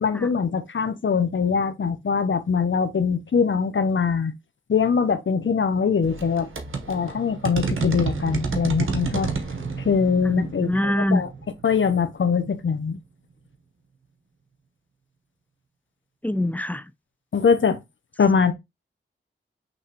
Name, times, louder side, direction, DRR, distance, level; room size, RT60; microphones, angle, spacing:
voice 1, 0.0-4.3 4.7-6.5 6.9-9.3 9.9-11.3 11.6-13.0 17.3-17.8 18.2-18.5, left 6 dB, 70° left, 0.8 m, -22 dB
sound 1, 6.0-12.5, right 4 dB, 80° right, 1.0 m, -30 dB
voice 2, 10.2-11.2 16.2-16.8, left 1 dB, 5° left, 0.4 m, -24 dB
5.5 x 3.1 x 2.9 m
cardioid pair, 40°, 21 cm